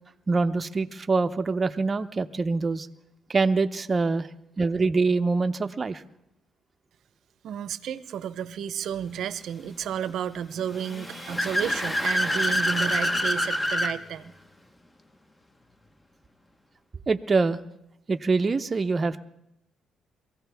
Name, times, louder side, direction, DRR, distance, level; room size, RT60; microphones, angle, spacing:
voice 1, 0.3-2.9 3.3-4.3 4.6-6.0 17.1-17.6 18.1-19.2, right 4 dB, 35° right, 7 dB, 0.6 m, -24 dB
voice 2, 7.4-14.3, right 9 dB, 70° right, 14 dB, 0.7 m, -32 dB
Car / Accelerating revving vroom, 10.7-13.9, left 1 dB, 20° left, 1.1 m, -26 dB
23.0 x 16.0 x 3.5 m, 0.84 s
cardioid pair, 90°, 0 cm